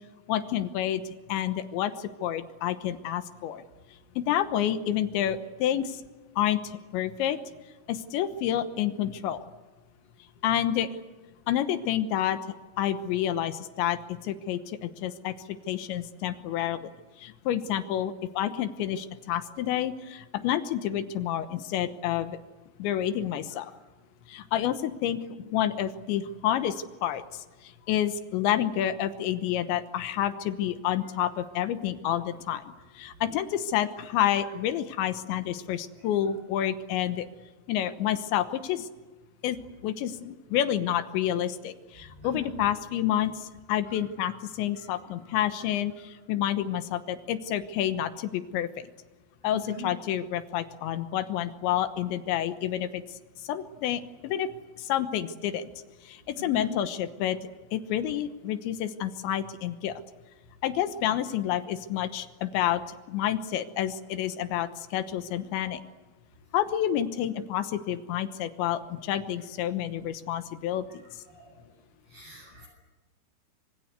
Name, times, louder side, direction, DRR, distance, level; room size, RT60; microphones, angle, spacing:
voice 1, 0.3-1.0 1.3-3.6 4.2-6.0 6.4-7.4 7.9-9.4 10.4-10.9 11.5-15.3 15.7-16.9 17.2-22.4 22.8-23.7 24.3-25.2 25.4-27.2 27.9-32.6 33.0-37.3 37.7-38.9 39.4-39.6 39.8-48.9 49.4-53.0 53.5-54.5 54.8-55.7 56.1-57.4 57.7-60.0 60.6-62.8 63.1-65.8 66.5-71.0, left 11 dB, 75° left, 11 dB, 3.2 m, -29 dB
voice 2, 42.0-42.6 43.8-44.4 44.7-45.3 45.6-45.7 49.4-49.9 56.4-56.8 70.9-71.6 72.1-72.7, left 1 dB, 50° right, 1 dB, 9.1 m, -44 dB
25.5 x 25.5 x 8.2 m, 1.3 s
omnidirectional pair, 5.6 m